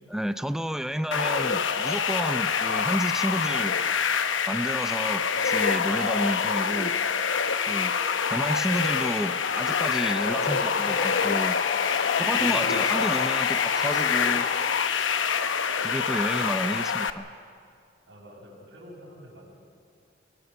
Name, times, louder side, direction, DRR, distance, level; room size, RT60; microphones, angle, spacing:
voice 1, 0.1-3.7 4.5-7.0 7.7-7.9 8.3-11.6 12.2-14.5 15.8-17.3, equal, 5° right, 10 dB, 0.6 m, -30 dB
sound 1, 1.1-17.1, left 6 dB, 80° left, 0.9 m, -26 dB
voice 2, 5.9-6.2 10.3-10.9 12.4-13.0 18.1-19.6, equal, 75° right, -8 dB, 6.4 m, -47 dB
sound 2, 8.7-15.7, left 7 dB, 45° left, 0.5 m, -34 dB
24.0 x 20.0 x 7.0 m, 2.3 s
head